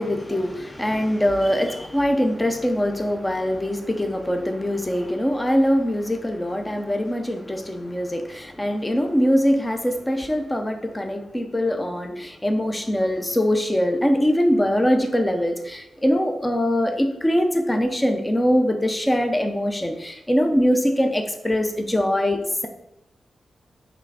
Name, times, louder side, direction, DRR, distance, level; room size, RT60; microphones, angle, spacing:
voice 1, 0.0-22.7, equal, 10° left, 5 dB, 0.5 m, -22 dB
6.0 x 3.3 x 4.7 m, 0.87 s
wide cardioid pair, 145°, 0 cm